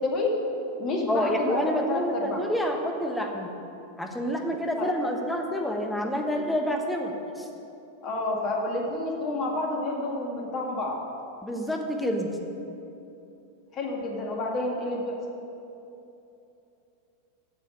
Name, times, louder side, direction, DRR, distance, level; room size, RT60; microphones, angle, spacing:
voice 1, 0.0-0.3 0.8-2.4 8.0-11.0 13.7-15.1, left 2 dB, 35° left, 0 dB, 2.0 m, -29 dB
voice 2, 1.1-3.5 4.0-7.5 11.4-12.3, equal, 5° left, 2 dB, 1.2 m, -28 dB
8.4 x 7.0 x 8.5 m, 2.9 s
figure-of-eight pair, 90°, 0 cm